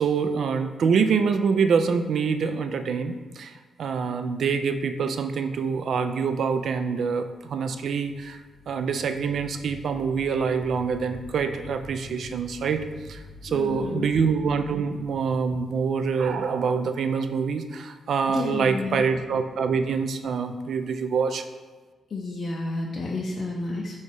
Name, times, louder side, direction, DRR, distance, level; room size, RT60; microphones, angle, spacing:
voice 1, 0.0-3.5 3.8-8.4 8.7-21.4, right 5 dB, 60° right, 9 dB, 0.3 m, -25 dB
sound 1, 8.2-17.0, equal, 75° right, 1.1 m, -47 dB
voice 2, 13.5-14.1 18.3-19.1 22.1-24.0, left 3 dB, 55° left, -1 dB, 0.4 m, -31 dB
4.1 x 3.5 x 3.5 m, 1.3 s
hypercardioid pair, 40°, 0 cm